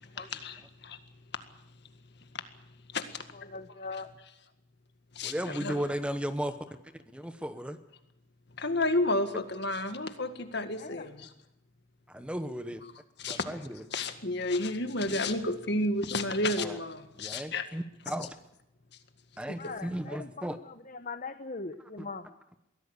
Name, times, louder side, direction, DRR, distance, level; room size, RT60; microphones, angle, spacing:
voice 1, 0.1-1.0 2.3-2.4 2.9-3.5 5.2-5.8 8.6-11.3 13.2-13.5 13.9-17.7 19.6-19.8, left 2 dB, 60° left, 8 dB, 1.9 m, -31 dB
voice 2, 3.3-4.1 10.7-11.1 19.6-22.3, left 4 dB, 40° left, 9 dB, 1.0 m, -41 dB
voice 3, 5.2-6.5 7.1-7.8 12.1-12.8 13.3-13.8 16.6-16.8 17.2-18.3 19.4-20.6, equal, 5° right, 10 dB, 0.9 m, -35 dB
22.5 x 16.5 x 8.2 m, 0.85 s
head